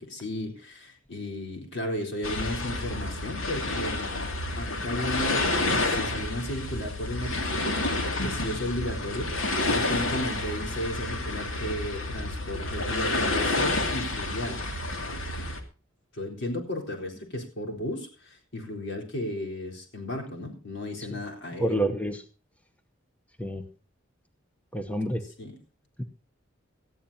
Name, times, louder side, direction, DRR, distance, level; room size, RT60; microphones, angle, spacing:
voice 1, 0.0-4.3 4.6-7.8 8.0-14.7 15.0-15.2 16.1-21.8 25.2-25.6, left 1 dB, 60° left, 2 dB, 4.1 m, -34 dB
sound 1, 2.2-15.6, left 2 dB, 90° left, 2.4 m, -29 dB
voice 2, 21.6-22.2 23.4-23.6 24.7-25.2 26.0-26.1, right 1 dB, 5° left, 7 dB, 0.9 m, -28 dB
19.0 x 14.0 x 2.8 m, 0.35 s
head